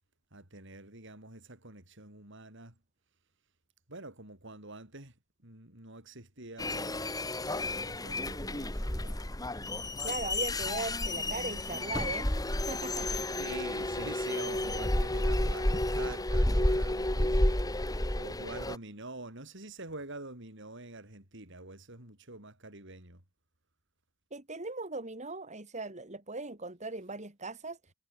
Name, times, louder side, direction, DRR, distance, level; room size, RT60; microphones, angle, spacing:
voice 1, 0.3-2.7 3.9-5.1 5.4-7.1 7.4-9.3 13.3-23.2, right 2 dB, 60° right, 7.4 m, -46 dB
sound 1, 6.6-18.8, left 1 dB, 20° left, 2.1 m, -31 dB
voice 2, 10.0-12.3 12.6-13.2 14.5-15.0 24.3-27.8, right 3 dB, 35° right, 3.7 m, -39 dB
head